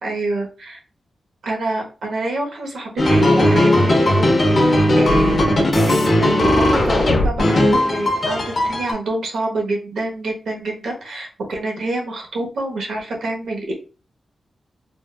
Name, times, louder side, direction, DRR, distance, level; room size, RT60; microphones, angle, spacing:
voice 1, 0.0-0.8 1.4-13.7, right 2 dB, 85° right, 0 dB, 0.9 m, -26 dB
sound 1, 3.0-8.9, left 1 dB, 35° left, 0.7 m, -16 dB
3.7 x 2.3 x 2.2 m, 0.36 s
wide cardioid pair, 165°, 0 cm